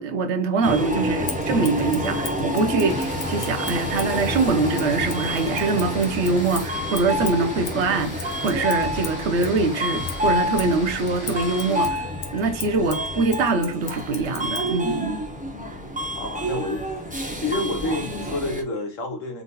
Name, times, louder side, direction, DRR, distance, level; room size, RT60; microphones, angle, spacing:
voice 1, 0.0-15.2, right 3 dB, 60° right, 0.9 m, -24 dB
Subway metro underground, 0.6-18.6, equal, 10° right, 0.4 m, -28 dB
Scissors, 1.2-4.2 4.7-9.6 10.0-14.7, left 6 dB, 85° left, 1.3 m, -38 dB
sound 1, 2.9-11.9, left 1 dB, 15° left, 1.0 m, -40 dB
voice 2, 15.1-17.0 17.3-19.4, left 2 dB, 70° left, 1.5 m, -30 dB
4.0 x 3.0 x 3.9 m
omnidirectional pair, 1.4 m